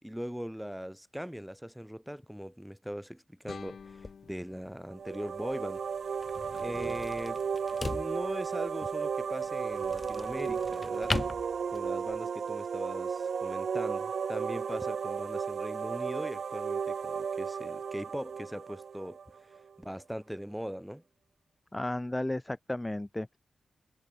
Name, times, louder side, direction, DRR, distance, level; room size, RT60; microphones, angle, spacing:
voice 1, 0.0-5.8 6.6-7.4 7.7-11.2 11.7-21.0, equal, 5° right, 4.4 m, -40 dB
sound 1, 3.5-6.5, left 6 dB, 70° left, 6.2 m, -51 dB
sound 2, 3.5-12.2, left 3 dB, 35° left, 4.4 m, -41 dB
sound 3, 4.9-19.6, right 6 dB, 75° right, 1.1 m, -34 dB
voice 2, 21.7-23.4, left 1 dB, 15° left, 1.2 m, -33 dB
cardioid pair, 50°, 0 cm